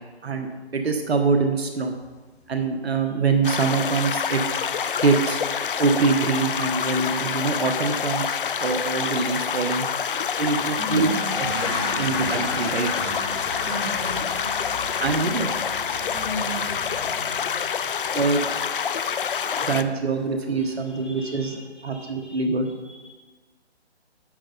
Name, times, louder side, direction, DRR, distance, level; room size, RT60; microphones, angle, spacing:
voice 1, 0.7-2.0 2.5-4.4 5.0-5.4 5.8-9.9 10.4-11.1 12.0-12.9 15.0-15.5 18.1-18.4 19.6-21.6 21.8-22.7, right 4 dB, 70° right, 5 dB, 1.2 m, -24 dB
sound 1, 3.4-19.8, left 7 dB, 55° left, 0.5 m, -27 dB
sound 2, 8.0-8.2 8.7-8.9 9.4-9.5 10.3-21.6, left 2 dB, 25° left, 1.3 m, -35 dB
voice 2, 10.2-12.2 13.4-14.5 15.2-15.5 16.0-18.5 20.6-23.1, equal, 5° right, -9 dB, 2.6 m, -38 dB
11.0 x 7.7 x 4.0 m, 1.3 s
hypercardioid pair, 155°, 33 cm